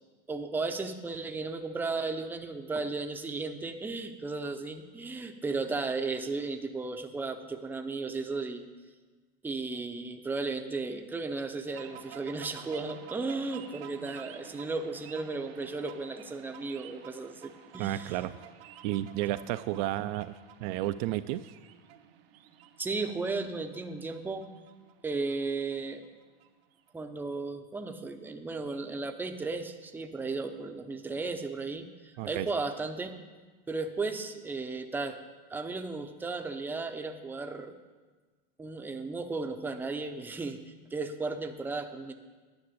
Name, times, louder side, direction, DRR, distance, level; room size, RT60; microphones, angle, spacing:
voice 1, 0.3-8.7 9.4-18.2 22.8-24.5 25.0-26.0 26.9-33.2 33.7-35.2 35.5-37.7 38.6-42.1, right 3 dB, 5° right, 6 dB, 0.6 m, -35 dB
sound 1, 11.7-26.9, right 10 dB, 85° right, 0.9 m, -51 dB
voice 2, 17.8-18.3 18.8-21.5 32.2-32.5, right 15 dB, 55° right, 11 dB, 0.4 m, -32 dB
10.5 x 6.0 x 8.4 m, 1.3 s
supercardioid pair, 135°, 29 cm